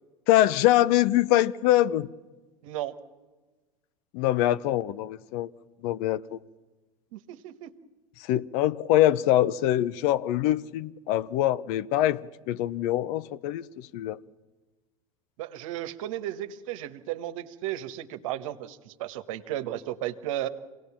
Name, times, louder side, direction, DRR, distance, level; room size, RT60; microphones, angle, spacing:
voice 1, 0.3-2.1 4.1-5.5 5.8-6.4 8.3-12.2 12.5-14.2, left 14 dB, 60° left, 0.8 m, -24 dB
voice 2, 2.6-3.0 7.1-7.7 15.4-20.5, right 13 dB, 70° right, 1.4 m, -34 dB
26.5 x 18.5 x 7.3 m
hypercardioid pair, 85°, 18 cm